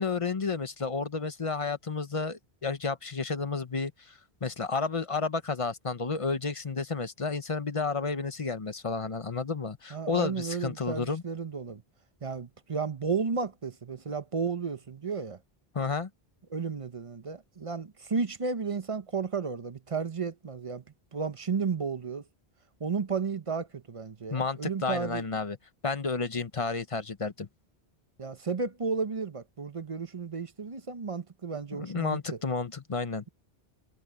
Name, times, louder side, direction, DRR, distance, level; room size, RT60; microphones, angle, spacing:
voice 1, 0.0-11.2 15.7-16.1 24.3-25.6 25.8-27.5 31.7-33.3, left 4 dB, 30° left, 1.0 m, -31 dB
voice 2, 9.9-11.8 12.2-15.4 16.5-20.8 21.1-22.2 22.8-25.2 28.2-32.4, right 5 dB, 35° right, 0.8 m, -33 dB
omnidirectional pair, 1.1 m